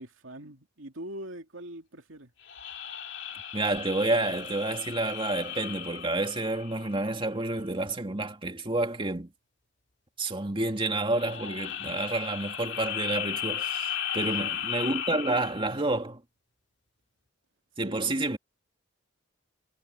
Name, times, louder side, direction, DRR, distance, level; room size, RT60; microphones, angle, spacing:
voice 1, 0.0-2.3 14.2-14.4 17.8-18.2, right 1 dB, 80° right, 2.8 m, -43 dB
sound 1, 2.4-7.2 11.0-15.8, left 9 dB, 60° left, 2.5 m, -36 dB
voice 2, 3.5-9.3 10.2-16.2 17.8-18.4, right 2 dB, 25° right, 2.2 m, -29 dB
head